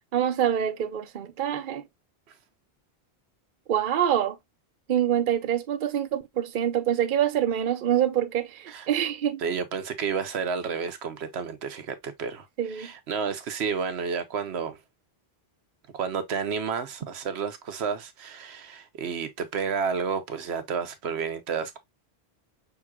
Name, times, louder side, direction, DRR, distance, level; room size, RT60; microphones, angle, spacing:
voice 1, 0.1-1.8 3.7-4.4 4.9-9.4 12.6-12.9, right 10 dB, 55° right, 0.8 m, -25 dB
voice 2, 9.4-14.8 15.9-21.8, right 6 dB, 90° right, 1.0 m, -31 dB
5.9 x 3.6 x 2.3 m
omnidirectional pair, 1.1 m